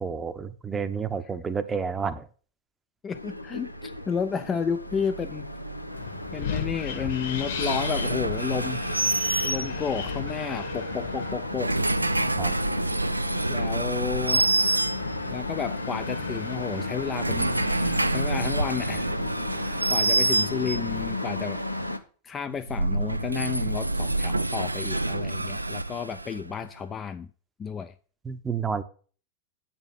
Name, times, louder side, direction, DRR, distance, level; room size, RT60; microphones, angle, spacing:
voice 1, 0.0-2.3 12.4-12.6 28.2-28.8, right 6 dB, 15° right, 0.7 m, -30 dB
voice 2, 3.0-5.5 6.3-8.8 9.4-11.9 13.5-14.5 15.3-17.6 18.1-19.2 19.5-21.6 22.2-27.3 27.6-28.0, left 7 dB, 20° left, 0.4 m, -32 dB
sound 1, 3.1-22.0, left 1 dB, 90° left, 0.6 m, -34 dB
Wind, 5.9-21.1, left 6 dB, 55° left, 1.6 m, -37 dB
sound 2, 7.6-10.1 11.4-15.4 16.9-21.0 22.5-26.7, right 2 dB, 85° right, 0.4 m, -27 dB
8.7 x 4.4 x 7.4 m
figure-of-eight pair, 90°, 0 cm